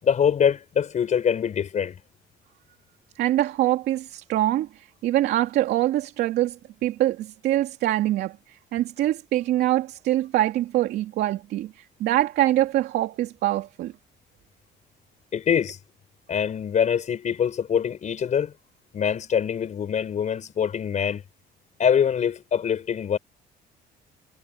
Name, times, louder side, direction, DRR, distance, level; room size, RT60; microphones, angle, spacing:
voice 1, 0.0-2.0 15.3-15.8 16.3-18.5 18.9-21.2 21.8-23.2, left 8 dB, 45° left, 4.9 m, -24 dB
voice 2, 3.2-13.9, right 14 dB, 75° right, 2.9 m, -24 dB
cardioid pair, 110°, 17 cm